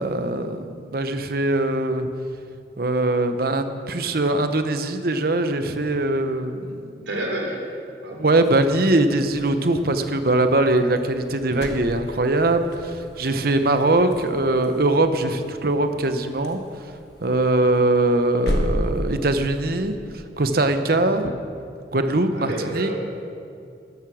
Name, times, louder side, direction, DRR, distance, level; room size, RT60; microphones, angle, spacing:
voice 1, 0.0-2.1 2.8-6.9 8.1-16.6 17.2-20.0 20.4-21.3 21.9-22.9, right 2 dB, 55° right, 8 dB, 0.9 m, -21 dB
voice 2, 7.1-7.6 8.0-8.2 22.3-22.9, right 1 dB, 80° right, -1 dB, 3.3 m, -29 dB
sound 1, 8.4-19.5, equal, 60° left, 1.5 m, -34 dB
13.0 x 11.0 x 6.4 m, 2.4 s
head